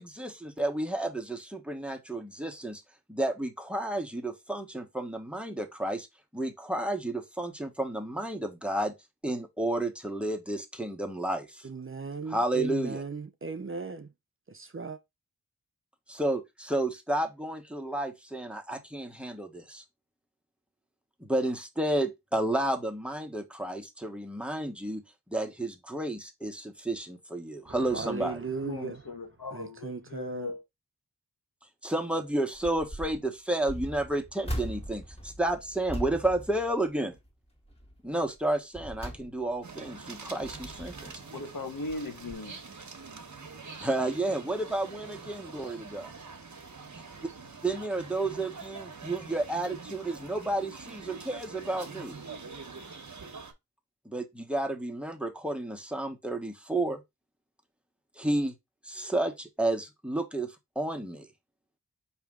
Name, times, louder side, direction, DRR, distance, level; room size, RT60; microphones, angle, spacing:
voice 1, 0.0-2.8 3.1-6.1 6.3-8.9 9.2-11.7 12.3-13.0 16.1-19.8 21.2-25.0 25.3-28.4 31.8-37.2 38.0-41.2 43.8-46.1 47.6-52.2 54.0-57.0 58.2-58.5 58.8-61.3, right 1 dB, 5° right, 1.1 m, -31 dB
voice 2, 11.6-14.1 14.5-15.0 27.7-29.0 29.5-30.5, right 4 dB, 35° right, 0.6 m, -37 dB
voice 3, 28.6-30.6 41.3-42.6, left 3 dB, 70° left, 1.1 m, -39 dB
sound 1, 32.5-33.2 33.6-37.3 37.7-38.0 38.5-39.8 40.3-41.2 41.9-42.0 42.3-42.4, equal, 15° left, 1.7 m, -40 dB
sound 2, 39.6-53.5, right 4 dB, 55° right, 1.0 m, -45 dB
5.0 x 2.9 x 3.6 m
cardioid pair, 45°, 36 cm